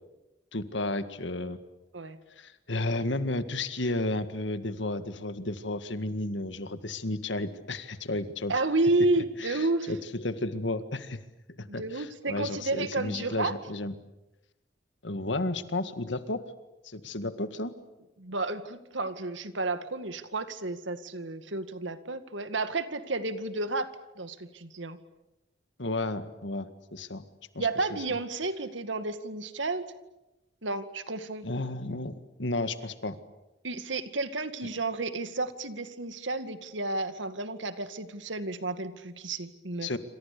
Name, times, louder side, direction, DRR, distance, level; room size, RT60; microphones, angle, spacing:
voice 1, 0.5-1.6 2.4-8.5 9.4-11.2 11.6-13.9 15.0-16.4 16.8-17.7 25.8-27.2 27.5-27.7 31.4-33.2 39.8-40.0, left 2 dB, 80° left, 11 dB, 1.9 m, -32 dB
voice 2, 8.5-9.9 11.7-13.6 18.2-23.9 24.2-25.0 27.6-29.8 30.6-31.5 33.6-39.9, right 2 dB, 85° right, 11 dB, 2.1 m, -31 dB
28.0 x 26.5 x 6.9 m, 1.0 s
head